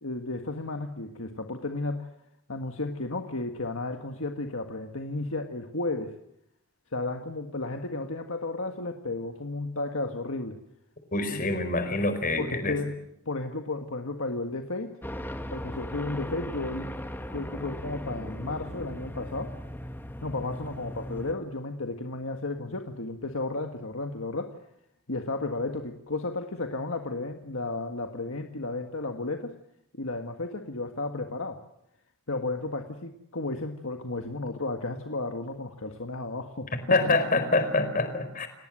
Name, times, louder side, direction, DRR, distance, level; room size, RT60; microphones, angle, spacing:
voice 1, 0.0-2.1 2.5-6.1 6.9-10.6 11.3-11.4 12.4-12.9 13.3-14.9 15.5-17.0 17.3-19.5 20.2-24.6 25.1-29.5 29.9-31.6 32.3-37.0, left 2 dB, 65° left, 5 dB, 1.8 m, -33 dB
voice 2, 11.1-12.8 36.9-38.5, left 2 dB, 40° left, 10 dB, 4.7 m, -25 dB
sound 1, 15.0-21.3, equal, 10° left, 1.6 m, -38 dB
30.0 x 19.0 x 7.6 m, 0.79 s
head